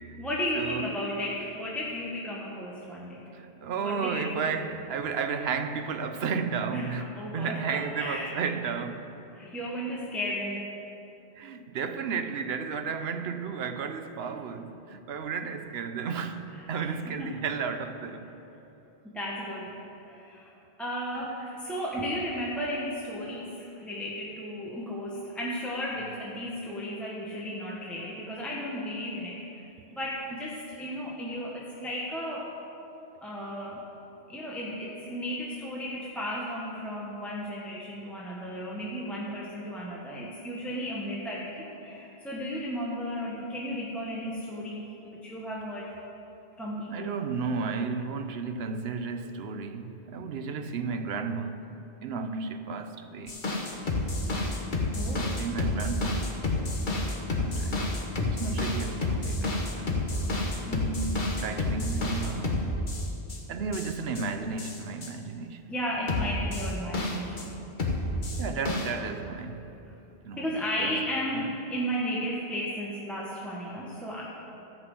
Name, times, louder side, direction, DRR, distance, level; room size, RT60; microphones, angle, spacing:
voice 1, 0.2-3.3 3.8-4.4 6.7-8.4 9.3-10.7 16.5-17.3 19.0-19.8 20.0-20.5 20.8-32.5 33.2-33.8 34.3-45.9 46.6-47.2 52.1-52.5 54.9-55.4 60.7-61.3 65.7-67.6 70.4-74.2, equal, ahead, 1.2 m, -34 dB
voice 2, 3.3-9.1 11.4-18.3 21.2-21.3 46.9-51.7 52.0-53.4 55.1-56.3 57.4-57.9 58.3-60.4 61.4-62.8 63.5-65.6 68.4-69.7 70.2-70.9 71.3-71.5, right 5 dB, 70° right, 1.0 m, -33 dB
sound 1, 53.3-63.4 63.7-64.2 64.6-65.1 66.1-67.5 67.8-68.9, left 2 dB, 50° left, 1.4 m, -29 dB
13.5 x 6.0 x 7.9 m
omnidirectional pair, 1.1 m